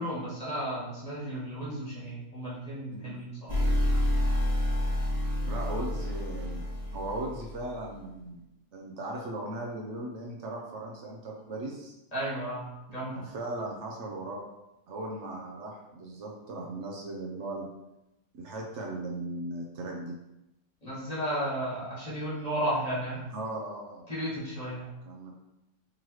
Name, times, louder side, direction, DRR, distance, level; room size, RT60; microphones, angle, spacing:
voice 1, 0.0-3.6 12.1-13.3 20.8-23.2 24.1-24.9, right 1 dB, 30° left, -8 dB, 1.2 m, -34 dB
sound 1, 3.5-7.7, left 1 dB, 50° right, 1.6 m, -28 dB
voice 2, 5.4-6.7 6.9-8.4 8.7-11.9 13.1-14.4 14.9-17.7 18.4-20.2 23.3-24.0 25.0-25.3, right 2 dB, 65° right, -1 dB, 1.0 m, -37 dB
3.8 x 3.0 x 3.0 m, 0.92 s
omnidirectional pair, 1.3 m